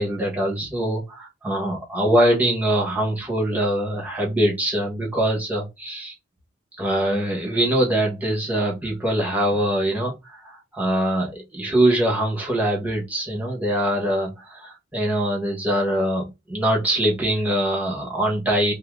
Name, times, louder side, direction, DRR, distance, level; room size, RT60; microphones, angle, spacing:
voice 1, 0.0-6.1 6.8-18.7, right 1 dB, 10° right, -2 dB, 1.2 m, -23 dB
2.8 x 2.7 x 3.5 m, 0.23 s
head